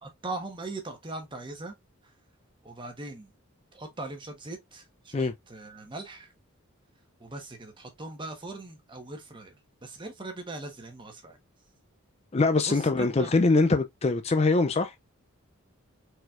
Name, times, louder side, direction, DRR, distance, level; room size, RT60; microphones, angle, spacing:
voice 1, 0.0-1.7 2.0-2.1 2.6-3.3 3.7-6.3 7.2-11.4 12.7-13.4, right 2 dB, 25° right, 1.2 m, -40 dB
voice 2, 12.3-14.9, left 3 dB, 30° left, 0.4 m, -23 dB
4.4 x 4.2 x 2.5 m
head